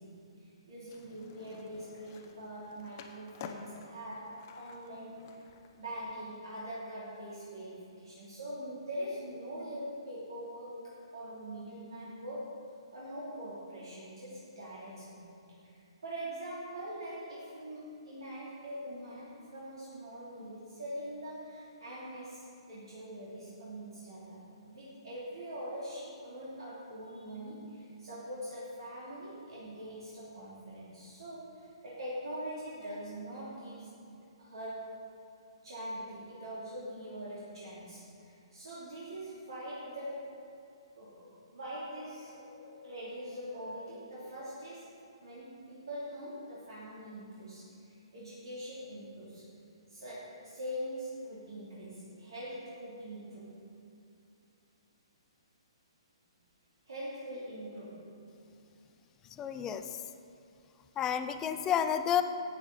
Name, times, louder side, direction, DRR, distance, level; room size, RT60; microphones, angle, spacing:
voice 1, 0.0-5.2 5.8-12.6 12.9-15.4 15.6-24.4 24.6-35.0 35.6-40.3 41.0-44.9 45.2-47.7 48.1-49.4 49.9-53.5 56.9-58.1, equal, 60° right, -9 dB, 3.2 m, -43 dB
Skateboard, 0.9-6.1, left 6 dB, 35° left, 0.9 m, -51 dB
voice 2, 59.4-59.8 61.0-62.2, left 9 dB, 15° left, 8 dB, 0.5 m, -30 dB
15.5 x 9.0 x 4.3 m, 2.5 s
figure-of-eight pair, 125°, 3 cm